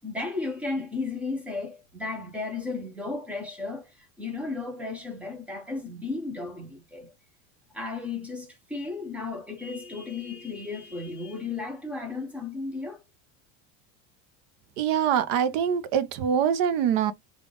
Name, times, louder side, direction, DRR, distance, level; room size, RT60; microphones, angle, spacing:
voice 1, 0.0-7.1 7.7-13.0, left 3 dB, 5° right, 0.6 m, -34 dB
voice 2, 14.8-17.1, right 8 dB, 45° right, 0.6 m, -24 dB
3.5 x 2.4 x 3.6 m
cardioid pair, 175°, 39 cm